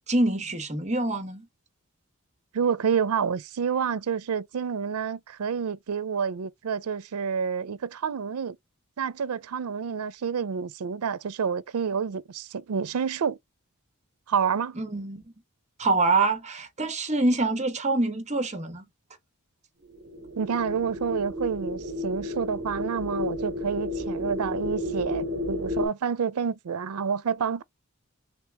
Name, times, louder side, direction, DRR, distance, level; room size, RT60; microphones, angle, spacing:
voice 1, 0.1-1.5 14.8-15.3 15.8-18.9, right 2 dB, 35° right, 1.2 m, -25 dB
voice 2, 2.5-8.6 9.0-13.4 14.3-14.8 20.4-27.6, right 6 dB, 90° right, 0.5 m, -28 dB
sound 1, 19.9-25.9, left 2 dB, 55° right, 0.9 m, -32 dB
3.4 x 2.8 x 3.3 m
head